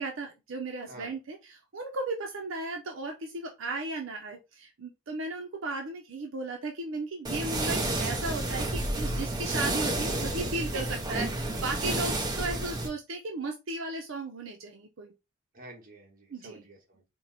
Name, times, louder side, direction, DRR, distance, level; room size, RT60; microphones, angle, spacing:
voice 1, 0.0-15.1 16.3-16.7, right 2 dB, 75° right, 3 dB, 0.7 m, -35 dB
sound 1, 7.2-12.9, right 1 dB, 20° right, 0.7 m, -30 dB
voice 2, 15.5-17.0, right 3 dB, 45° right, 0 dB, 1.4 m, -48 dB
4.6 x 2.2 x 4.0 m, 0.25 s
head